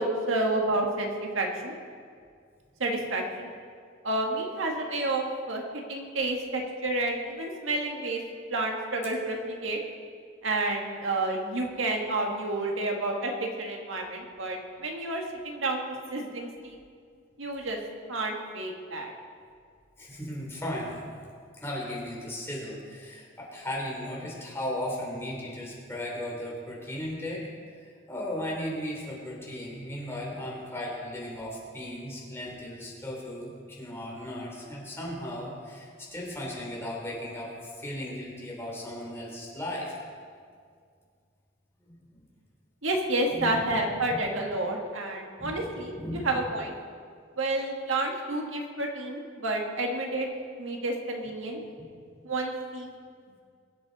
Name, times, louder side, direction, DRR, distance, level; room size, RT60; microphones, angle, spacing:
voice 1, 0.0-1.7 2.8-3.5 4.0-8.2 8.5-9.8 10.4-15.8 16.1-16.8 17.4-17.8 18.1-19.1 42.8-46.7 47.4-50.3 50.6-51.6 52.2-52.9, right 2 dB, 75° right, 1 dB, 1.7 m, -30 dB
voice 2, 20.0-21.0 21.6-27.4 27.8-40.0 41.8-41.9 43.2-43.8 44.1-44.2 45.4-46.3, left 1 dB, 15° left, -4 dB, 3.5 m, -36 dB
22.5 x 8.2 x 4.2 m, 2.1 s
head